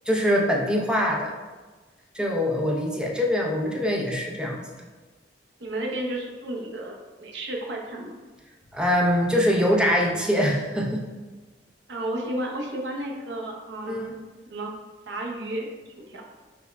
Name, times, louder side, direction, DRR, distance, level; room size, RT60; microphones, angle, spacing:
voice 1, 0.1-1.3 2.1-4.9 8.7-11.1 13.9-14.1, equal, 5° right, -1 dB, 0.5 m, -23 dB
voice 2, 5.6-8.1 11.9-14.0 14.5-14.7 15.1-15.7 16.0-16.2, right 1 dB, 75° right, 0 dB, 0.7 m, -32 dB
5.8 x 2.1 x 3.3 m, 1.3 s
head